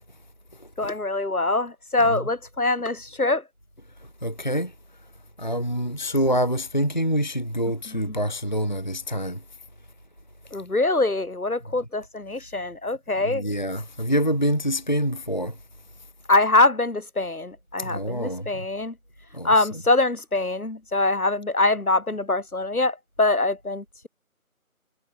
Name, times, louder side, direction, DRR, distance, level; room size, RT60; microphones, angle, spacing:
voice 1, 0.8-3.4 7.9-8.1 10.5-13.4 16.3-18.9 19.4-24.1, left 2 dB, 80° left, 3.4 m, -24 dB
voice 2, 4.2-4.7 5.4-9.4 13.2-15.6 17.8-18.6 19.3-19.8, equal, 30° left, 0.8 m, -26 dB
figure-of-eight pair, 170°, 43 cm